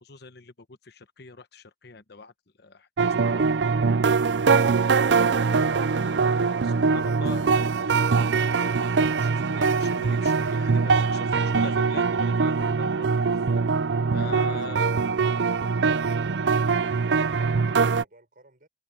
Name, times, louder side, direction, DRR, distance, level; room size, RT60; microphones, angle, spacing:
voice 1, 0.0-2.3 2.6-3.6 4.5-4.7 5.5-13.1 14.1-15.0, left 3 dB, 65° left, 1.1 m, -43 dB
sound 1, 3.0-18.0, right 5 dB, 75° right, 0.5 m, -23 dB
voice 2, 14.5-18.7, right 2 dB, 50° right, 6.4 m, -55 dB
head